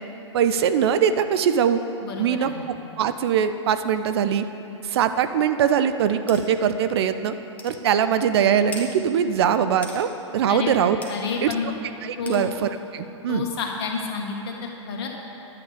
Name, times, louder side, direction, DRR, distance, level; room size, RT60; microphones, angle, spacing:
voice 1, 0.3-1.8 2.2-4.4 4.8-7.3 7.6-11.0 11.4-11.5 12.0-13.5, right 8 dB, 55° right, 10 dB, 0.5 m, -22 dB
voice 2, 2.0-2.7 10.5-10.8 11.1-11.7 12.2-12.5 13.3-15.1, left 5 dB, 55° left, 0 dB, 1.7 m, -30 dB
sound 1, 6.3-6.4 7.0-7.1 7.6-7.8 8.7-8.9 9.8-10.0 11.0-11.1 12.3-12.4, left 2 dB, 10° left, 1.2 m, -37 dB
10.5 x 8.4 x 5.0 m, 2.9 s
hypercardioid pair, 110°, 16 cm